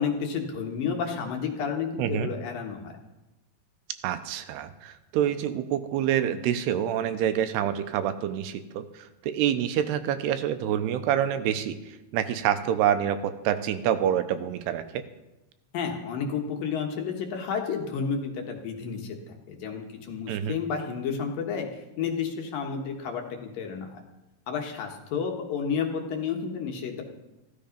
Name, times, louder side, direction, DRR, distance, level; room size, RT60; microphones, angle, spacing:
voice 1, 0.0-2.9 15.7-24.0 24.5-27.0, left 6 dB, 65° left, 2 dB, 2.8 m, -31 dB
voice 2, 2.0-2.3 4.0-15.0 20.3-20.5, right 10 dB, 85° right, 10 dB, 2.8 m, -27 dB
15.0 x 13.0 x 5.2 m, 1.0 s
omnidirectional pair, 4.8 m